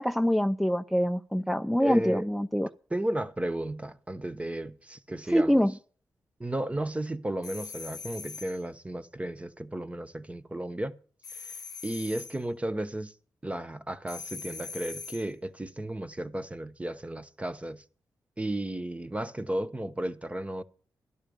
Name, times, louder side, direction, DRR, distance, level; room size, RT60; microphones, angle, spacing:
voice 1, 0.0-2.7 5.3-5.7, equal, ahead, 0.5 m, -25 dB
voice 2, 1.8-2.3 2.9-5.7 6.4-10.9 11.3-11.5 11.8-13.1 13.4-17.8 18.4-20.6, right 1 dB, 20° right, 1.0 m, -34 dB
sound 1, 7.4-8.6 11.2-12.4 14.1-15.3, left 4 dB, 60° left, 0.7 m, -42 dB
13.0 x 11.5 x 5.2 m
cardioid pair, 65°, 7 cm